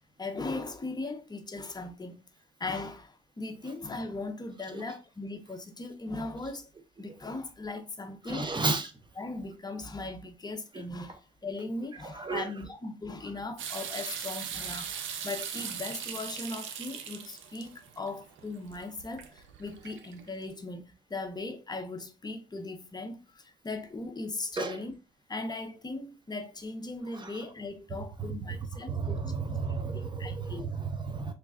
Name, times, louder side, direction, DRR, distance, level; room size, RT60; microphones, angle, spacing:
voice 1, 0.2-2.2 2.6-6.7 7.0-8.6 9.2-14.9 15.2-24.9 25.3-29.2 29.9-30.6, left 2 dB, 20° left, 0.7 m, -38 dB
voice 2, 8.3-8.9 10.7-10.8 12.2-12.5 24.6-24.7 28.9-31.3, right 4 dB, 25° right, 0.7 m, -32 dB
sound 1, 13.6-20.4, right 8 dB, 80° right, 0.6 m, -40 dB
3.2 x 2.3 x 3.4 m
cardioid pair, 90°, 20 cm